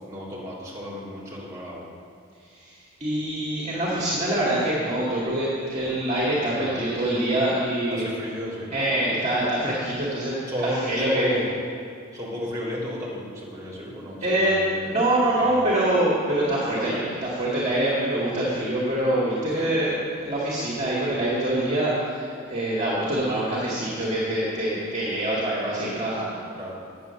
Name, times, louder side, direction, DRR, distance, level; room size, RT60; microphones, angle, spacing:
voice 1, 0.0-1.9 5.8-6.0 6.6-6.9 7.9-8.7 10.5-11.5 12.1-14.9 15.3-15.6 19.6-19.7 26.6-26.7, equal, 15° right, -5 dB, 3.0 m, -34 dB
voice 2, 3.0-8.0 8.7-11.4 14.2-14.6 14.8-26.4, right 1 dB, 35° right, -7 dB, 2.0 m, -25 dB
9.6 x 7.6 x 6.9 m, 2.5 s
head